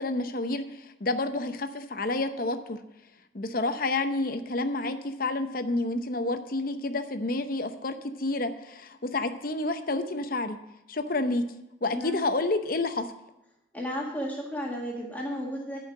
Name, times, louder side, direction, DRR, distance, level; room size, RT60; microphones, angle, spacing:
voice 1, 0.0-2.8 3.3-10.6 10.9-11.4 11.8-13.1, left 2 dB, 45° left, 8 dB, 0.7 m, -29 dB
voice 2, 11.9-12.2 13.7-15.8, equal, 10° left, -3 dB, 1.7 m, -33 dB
11.0 x 5.6 x 7.4 m, 0.88 s
head